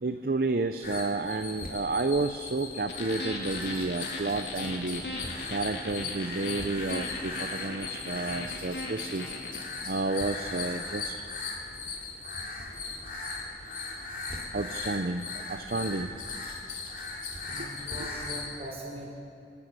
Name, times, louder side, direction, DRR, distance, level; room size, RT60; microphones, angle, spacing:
voice 1, 0.0-5.0 5.5-9.2 9.9-11.1 14.5-16.1, right 3 dB, 55° right, 8 dB, 0.6 m, -31 dB
sound 1, 0.8-18.5, left 3 dB, 50° left, 2.8 m, -38 dB
sound 2, 2.9-9.6, left 2 dB, 75° left, 2.9 m, -38 dB
voice 2, 17.5-19.1, right 1 dB, 35° right, -3 dB, 5.9 m, -41 dB
27.0 x 13.0 x 8.2 m, 2.5 s
head